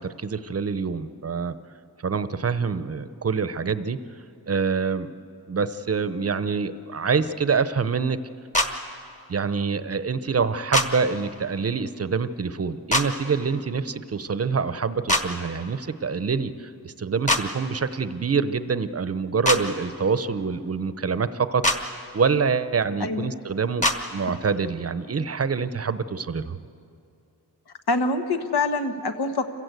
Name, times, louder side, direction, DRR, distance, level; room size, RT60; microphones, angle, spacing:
voice 1, 0.0-1.5 2.0-4.0 4.5-5.1 5.5-8.2 8.6-8.7 9.3-26.6, right 5 dB, 40° right, 13 dB, 0.8 m, -26 dB
sound 1, 8.5-8.7 10.7-10.9 12.9-13.1 15.1-15.2 17.3-17.4 19.4-19.6 21.6-21.8 23.8-24.0, left 1 dB, 20° left, 1.4 m, -21 dB
voice 2, 23.0-23.4 24.3-24.4 27.9-29.5, left 3 dB, 75° left, 7 dB, 1.5 m, -25 dB
27.0 x 15.5 x 8.2 m, 2.6 s
wide cardioid pair, 115°, 39 cm